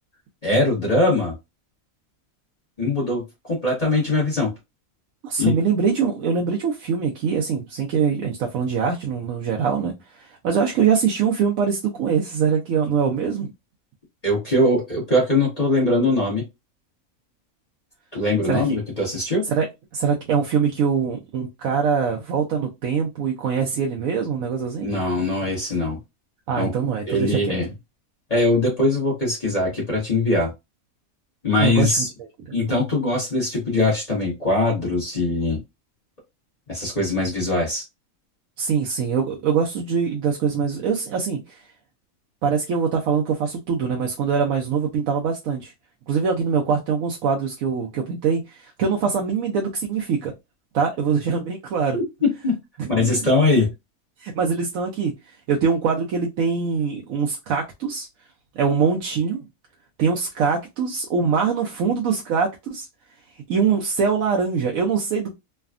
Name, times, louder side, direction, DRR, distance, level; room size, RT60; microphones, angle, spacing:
voice 1, 0.4-1.3 2.8-3.2 3.5-4.5 5.4-5.5 14.2-16.4 18.1-19.4 24.8-26.0 26.6-26.7 27.1-27.7 28.3-30.5 31.4-32.1 32.5-35.6 36.7-37.8 51.9-52.0 52.4-52.5 52.9-53.7, left 2 dB, 30° left, 1.1 m, -21 dB
voice 2, 5.2-13.5 18.5-18.6 19.4-19.7 19.9-24.9 26.5-27.6 31.6-32.0 32.5-32.6 38.6-41.7 42.4-45.7 46.1-50.3 50.7-52.0 52.8-53.2 54.2-58.1 58.5-59.4 60.0-62.9 63.5-65.3, right 6 dB, 75° right, 1.0 m, -23 dB
3.3 x 2.2 x 2.4 m
omnidirectional pair, 1.5 m